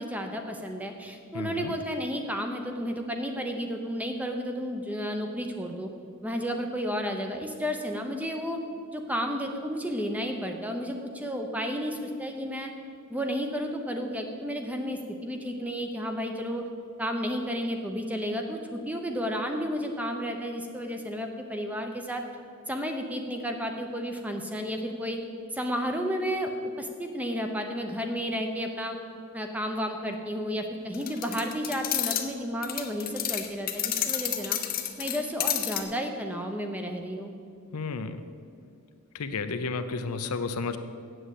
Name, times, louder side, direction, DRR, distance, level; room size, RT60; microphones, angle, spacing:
voice 1, 0.0-5.9 6.2-8.6 8.9-12.7 13.1-16.6 17.0-22.2 22.7-25.2 25.5-26.5 26.8-29.0 29.3-34.6 35.0-37.3, equal, 5° right, 4 dB, 0.7 m, -32 dB
voice 2, 1.3-1.7 37.7-38.2 39.1-40.8, left 4 dB, 90° left, 9 dB, 0.7 m, -32 dB
sound 1, 30.9-32.3 32.6-35.8, left 11 dB, 40° left, 0.8 m, -30 dB
7.8 x 7.7 x 8.3 m, 2.4 s
head